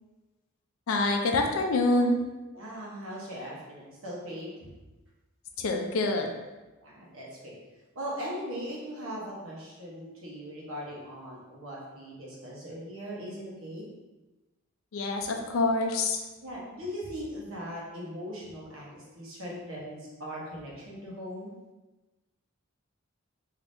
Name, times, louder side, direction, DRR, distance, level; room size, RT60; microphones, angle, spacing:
voice 1, 0.9-2.2 5.6-6.3 14.9-16.2, left 2 dB, 75° left, 3 dB, 0.4 m, -26 dB
voice 2, 2.5-4.5 6.8-7.6 7.9-13.9 16.4-21.5, equal, 75° right, -5 dB, 1.0 m, -39 dB
3.4 x 2.7 x 2.6 m, 1.1 s
head